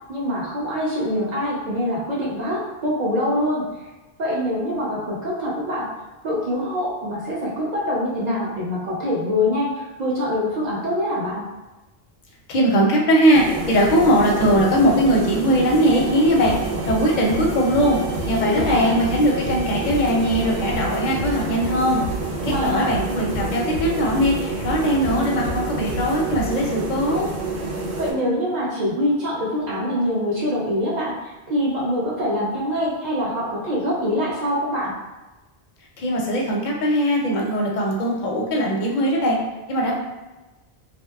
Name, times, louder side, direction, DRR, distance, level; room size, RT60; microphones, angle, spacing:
voice 1, 0.1-3.7 4.2-5.9 6.2-11.4 18.4-18.9 22.4-22.9 28.0-31.1 31.5-34.9, left 1 dB, 55° right, -6 dB, 0.5 m, -24 dB
voice 2, 12.5-16.5 16.9-18.0 18.3-22.0 22.4-27.3 36.0-39.4 39.7-39.9, equal, 55° left, -2 dB, 0.5 m, -20 dB
sound 1, 13.3-28.1, right 3 dB, 80° right, 0.8 m, -29 dB
sound 2, 15.8-20.8, right 4 dB, 25° right, 0.8 m, -40 dB
sound 3, 16.4-26.7, equal, 85° left, 0.8 m, -33 dB
2.6 x 2.1 x 2.2 m, 1.1 s
omnidirectional pair, 1.1 m